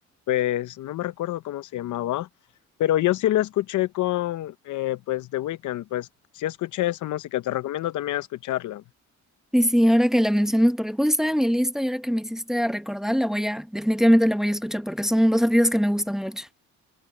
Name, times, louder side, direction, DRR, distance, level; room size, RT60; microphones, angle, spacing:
voice 1, 0.3-2.3 2.8-6.1 6.3-8.8, left 14 dB, 75° left, 0.8 m, -27 dB
voice 2, 9.5-16.5, equal, ahead, 0.9 m, -22 dB
cardioid pair, 90°, 30 cm